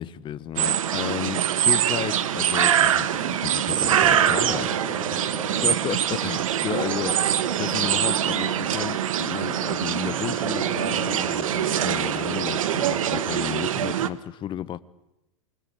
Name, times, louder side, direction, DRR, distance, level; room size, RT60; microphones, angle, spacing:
voice 1, 0.0-4.7 5.1-5.2 5.6-14.8, left 11 dB, 30° left, 1.1 m, -33 dB
sound 1, 0.6-14.1, right 10 dB, 75° right, 1.5 m, -24 dB
Growling, 0.9-2.6 3.0-6.0 6.5-13.3 13.6-13.7, right 5 dB, 35° right, 5.9 m, -34 dB
24.5 x 20.5 x 9.0 m
hypercardioid pair, 115°, 17 cm